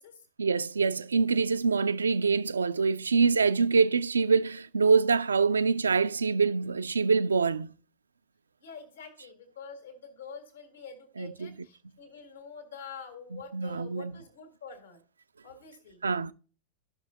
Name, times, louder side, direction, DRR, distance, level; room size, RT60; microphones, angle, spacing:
voice 1, 0.4-7.7 11.2-11.5 13.5-14.1 16.0-16.3, right 4 dB, 75° right, 0.4 m, -25 dB
voice 2, 8.6-15.0 15.4-16.3, left 5 dB, 65° left, 1.8 m, -46 dB
13.0 x 6.1 x 2.8 m
figure-of-eight pair, 90°, 0 cm